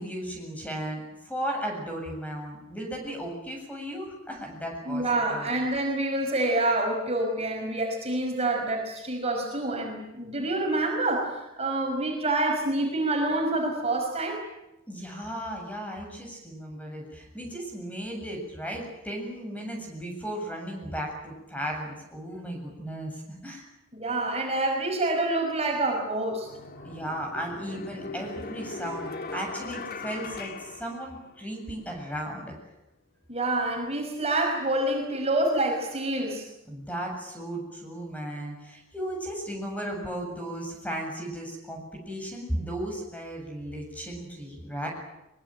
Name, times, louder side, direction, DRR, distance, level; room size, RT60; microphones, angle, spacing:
voice 1, 0.0-5.5 14.9-23.6 26.8-32.5 36.7-44.9, right 1 dB, 5° left, 1 dB, 7.7 m, -35 dB
voice 2, 4.9-14.4 23.9-26.5 33.3-36.4, right 2 dB, 30° right, 1 dB, 5.6 m, -27 dB
sound 1, 25.7-25.8 26.4-31.6, left 3 dB, 45° left, 2.2 m, -39 dB
23.5 x 23.5 x 9.1 m, 0.89 s
head